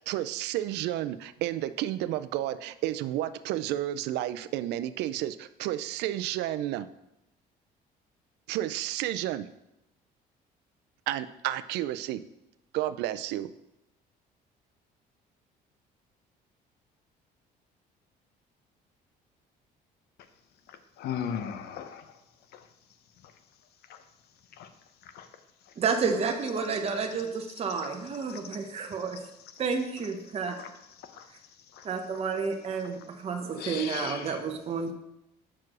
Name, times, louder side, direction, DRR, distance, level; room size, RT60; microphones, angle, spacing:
voice 1, 0.0-6.9 8.5-9.5 11.1-12.2 12.7-13.5, right 13 dB, 85° right, 13 dB, 0.4 m, -31 dB
voice 2, 21.0-22.0 24.6-24.7 25.1-25.3 31.2-31.3 31.8-31.9 33.6-34.3, left 8 dB, 75° left, 9 dB, 0.7 m, -36 dB
voice 3, 25.8-29.2 29.6-30.6 31.8-34.9, right 5 dB, 40° right, 4 dB, 0.8 m, -30 dB
6.1 x 4.7 x 4.8 m, 0.86 s
cardioid pair, 110°, 17 cm